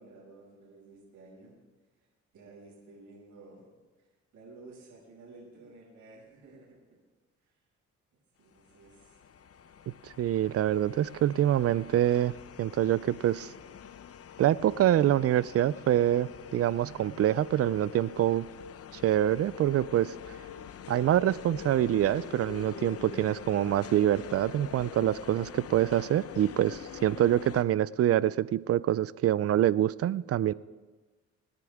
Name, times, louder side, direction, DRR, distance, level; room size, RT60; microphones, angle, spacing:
voice 1, 0.0-1.6 2.3-3.7 4.3-7.0 7.4-7.5 8.4-9.2, right 3 dB, 75° right, -4 dB, 6.0 m, -52 dB
sound 1, 8.7-27.6, left 8 dB, 50° left, 0.8 m, -45 dB
voice 2, 10.0-12.3 12.6-13.5 14.4-18.5 18.9-20.1 20.9-30.5, right 12 dB, 50° right, 20 dB, 0.5 m, -26 dB
26.0 x 9.7 x 3.6 m, 1.2 s
cardioid pair, 90°, 30 cm